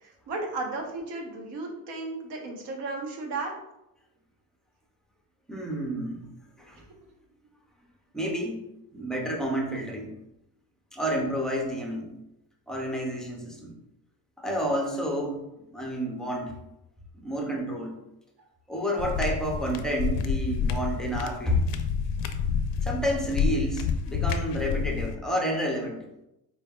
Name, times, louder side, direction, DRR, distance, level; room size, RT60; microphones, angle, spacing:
voice 1, 0.0-3.5, right 3 dB, 70° right, 1 dB, 1.0 m, -34 dB
voice 2, 5.5-6.3 6.6-6.8 8.1-8.6 8.9-10.1 10.9-12.1 12.7-13.7 14.4-15.4 15.7-16.5 17.1-18.0 18.7-21.6 22.8-26.0, equal, ahead, -1 dB, 0.4 m, -30 dB
sound 1, 19.0-25.1, left 6 dB, 90° left, 0.5 m, -28 dB
4.4 x 3.4 x 2.3 m, 0.87 s
cardioid pair, 155°, 42 cm